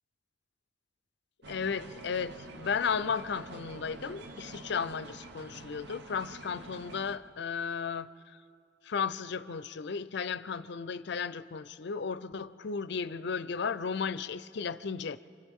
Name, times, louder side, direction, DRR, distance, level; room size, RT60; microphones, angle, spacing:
sound 1, 1.4-7.2, right 2 dB, 65° right, 0.9 m, -47 dB
voice 1, 1.5-8.1 8.9-15.2, left 6 dB, 65° left, 0.5 m, -34 dB
28.5 x 25.0 x 3.6 m
head